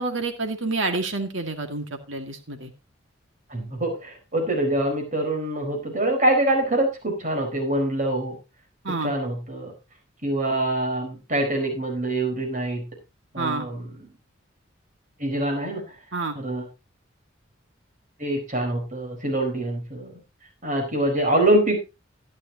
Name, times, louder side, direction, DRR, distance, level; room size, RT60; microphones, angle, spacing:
voice 1, 0.0-2.7 8.8-9.1 13.4-13.7 16.1-16.3, right 3 dB, 65° right, 5 dB, 2.1 m, -28 dB
voice 2, 3.5-8.4 8.9-9.7 10.2-12.8 13.3-14.1 15.2-15.8 16.3-16.7 18.2-20.1 20.6-21.8, right 1 dB, 40° right, 2 dB, 4.5 m, -25 dB
14.5 x 11.0 x 2.9 m, 0.26 s
head